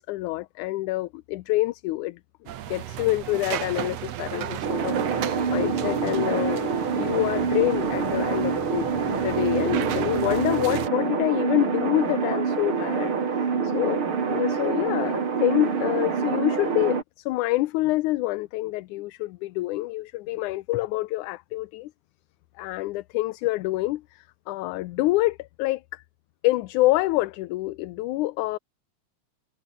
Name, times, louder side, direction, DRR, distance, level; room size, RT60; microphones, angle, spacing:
voice 1, 0.0-2.2 2.7-21.9 22.6-26.0 26.4-28.6, left 18 dB, 80° left, 2.1 m, -27 dB
sound 1, 2.5-10.9, right 11 dB, 60° right, 2.2 m, -34 dB
sound 2, 4.6-17.0, right 6 dB, 45° right, 3.3 m, -26 dB
omnidirectional pair, 3.5 m